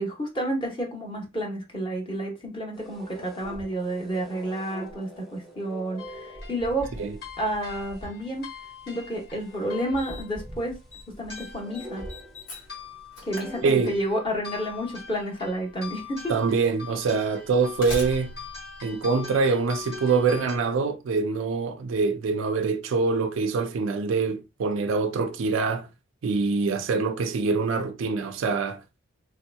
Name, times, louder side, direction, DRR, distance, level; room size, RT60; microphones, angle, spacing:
voice 1, 0.0-6.9 7.4-8.6 8.9-10.7 11.2-12.0 13.3-16.3, right 1 dB, 25° left, 0.9 m, -30 dB
sound 1, 2.7-8.1 8.4-8.5 9.2-12.8 13.2-13.6, right 1 dB, ahead, 0.5 m, -42 dB
sound 2, 6.0-20.6, left 5 dB, 50° left, 1.4 m, -44 dB
Slam, 9.1-9.2 10.0-10.4 10.7-11.0 11.3-14.3 15.4-15.5 16.4-16.5 17.4-19.8, left 1 dB, 75° left, 1.6 m, -40 dB
voice 2, 13.6-13.9 16.3-18.3 18.8-25.9 26.2-28.8, right 4 dB, 65° right, 0.4 m, -24 dB
3.3 x 2.8 x 2.2 m
head